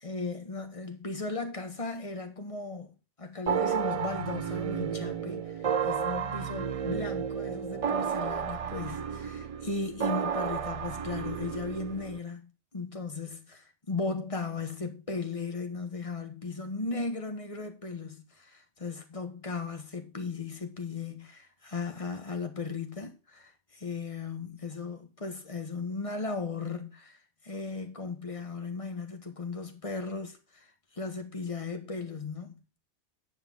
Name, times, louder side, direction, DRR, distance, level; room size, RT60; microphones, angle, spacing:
voice 1, 0.0-32.6, left 3 dB, 30° left, 1.4 m, -37 dB
sound 1, 3.5-12.2, right 7 dB, 50° right, 0.4 m, -32 dB
9.4 x 5.7 x 5.6 m
omnidirectional pair, 1.1 m